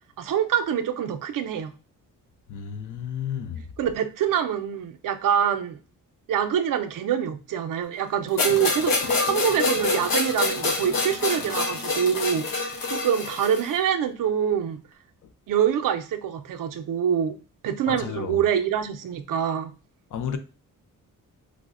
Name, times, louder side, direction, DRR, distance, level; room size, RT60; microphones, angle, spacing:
voice 1, 0.2-1.7 3.8-5.8 6.3-14.8 15.5-17.4 17.6-19.7, right 9 dB, 70° right, 0.5 m, -25 dB
voice 2, 2.5-3.6 17.9-18.4 20.1-20.4, left 8 dB, 65° left, 0.5 m, -32 dB
sound 1, 8.4-13.7, left 3 dB, 85° left, 0.9 m, -26 dB
4.7 x 2.1 x 2.4 m
wide cardioid pair, 155°, 34 cm